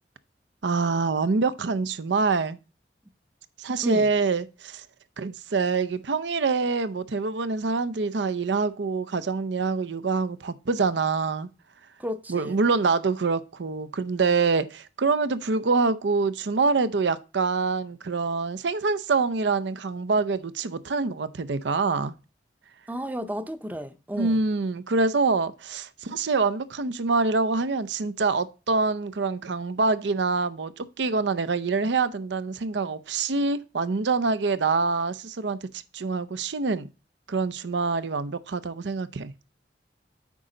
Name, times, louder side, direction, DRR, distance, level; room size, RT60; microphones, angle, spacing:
voice 1, 0.6-2.6 3.6-4.8 5.2-11.5 12.3-22.1 24.1-36.9 37.3-39.3, right 4 dB, 85° right, 0.6 m, -25 dB
voice 2, 12.0-12.6 22.9-24.4, equal, 10° right, 0.5 m, -33 dB
8.4 x 5.1 x 3.8 m
head